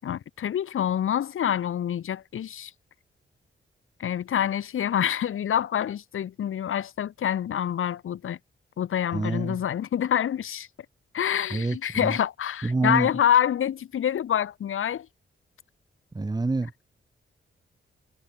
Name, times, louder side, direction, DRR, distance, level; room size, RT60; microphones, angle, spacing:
voice 1, 0.0-2.7 4.0-8.4 8.8-10.7 11.1-15.1, left 9 dB, 90° left, 5.4 m, -26 dB
voice 2, 9.1-9.6 11.5-12.2 12.6-13.1 16.1-16.7, right 3 dB, 20° right, 2.1 m, -27 dB
cardioid pair, 110°, 21 cm